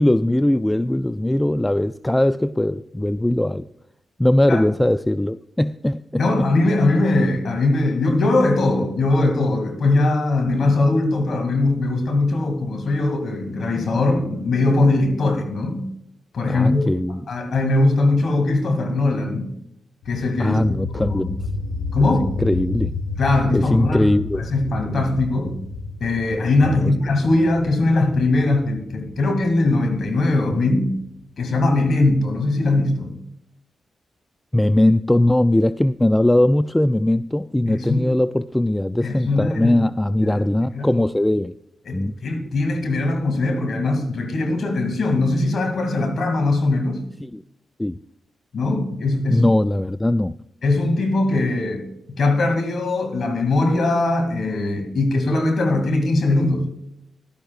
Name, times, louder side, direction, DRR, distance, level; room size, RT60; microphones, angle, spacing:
voice 1, 0.0-3.7 4.2-6.5 10.5-10.6 16.5-17.2 20.4-21.4 22.4-23.0 23.5-24.5 26.6-26.9 34.5-41.5 41.9-42.1 47.2-47.4 47.8-48.0 49.3-50.3, left 1 dB, 10° left, 13 dB, 0.3 m, -20 dB
voice 2, 6.2-15.8 16.3-16.8 17.3-19.5 20.1-20.6 21.0-21.2 21.9-22.3 23.2-24.1 24.4-25.5 26.0-30.9 31.4-33.1 37.7-38.1 39.0-39.8 40.2-40.9 41.9-47.0 48.5-49.4 50.6-51.8 52.1-56.6, left 2 dB, 65° left, 5 dB, 2.4 m, -20 dB
sound 1, 20.0-31.6, left 3 dB, 90° left, 1.2 m, -31 dB
15.0 x 11.5 x 2.4 m, 0.80 s
supercardioid pair, 50°, 0 cm